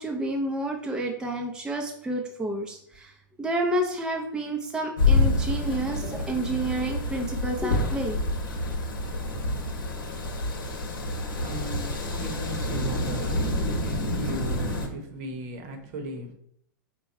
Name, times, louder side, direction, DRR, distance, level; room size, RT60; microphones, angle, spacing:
voice 1, 0.0-3.1 3.4-8.2, right 1 dB, 5° right, 1 dB, 0.5 m, -30 dB
sound 1, 5.0-14.9, left 2 dB, 80° left, 0.9 m, -27 dB
voice 2, 11.3-13.3 13.8-16.3, right 1 dB, 50° right, 5 dB, 0.9 m, -37 dB
4.6 x 2.2 x 4.1 m, 0.68 s
hypercardioid pair, 110°, 11 cm